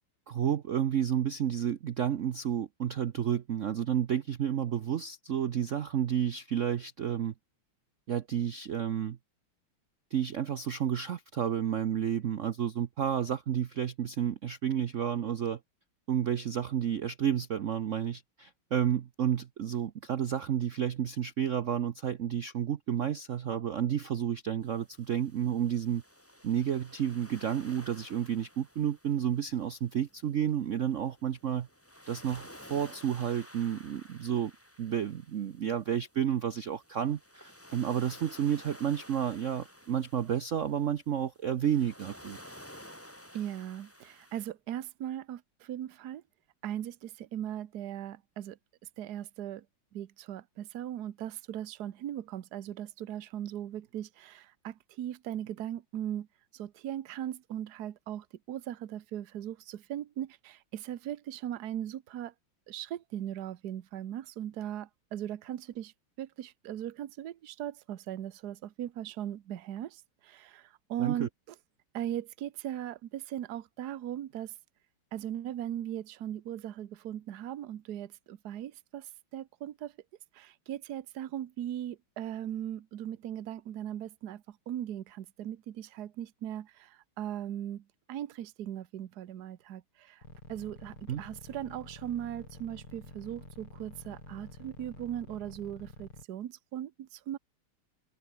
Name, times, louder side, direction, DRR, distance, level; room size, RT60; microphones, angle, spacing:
voice 1, 0.3-7.3 8.1-9.2 10.1-15.6 16.1-26.0 26.4-31.7 32.1-34.5 34.8-42.4 71.0-71.3 91.1-91.2, right 9 dB, 75° right, 0.7 m, -31 dB
sound 1, 24.6-44.5, equal, 5° left, 7.3 m, -53 dB
voice 2, 43.3-46.2 46.6-48.6 49.0-49.6 49.9-56.3 56.5-62.3 62.7-65.9 66.2-71.3 71.9-74.5 75.1-79.9 80.3-90.2 90.5-97.4, right 11 dB, 55° right, 1.4 m, -39 dB
sound 2, 90.2-96.3, left 2 dB, 85° left, 7.8 m, -49 dB
omnidirectional pair, 2.3 m